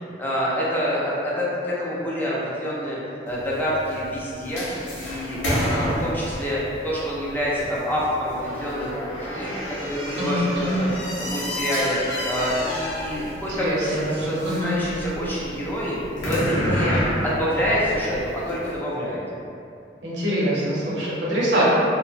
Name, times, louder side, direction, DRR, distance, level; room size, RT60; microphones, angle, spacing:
voice 1, 0.2-4.7 5.0-5.4 5.6-6.6 6.8-10.9 11.2-12.0 12.3-19.2, equal, 10° left, -7 dB, 0.4 m, -27 dB
sound 1, 3.3-18.7, equal, 85° left, 0.6 m, -30 dB
voice 2, 5.5-5.9 10.2-10.8 13.5-14.7 20.0-21.6, equal, 90° right, -7 dB, 0.7 m, -25 dB
2.7 x 2.0 x 2.5 m, 2.6 s
head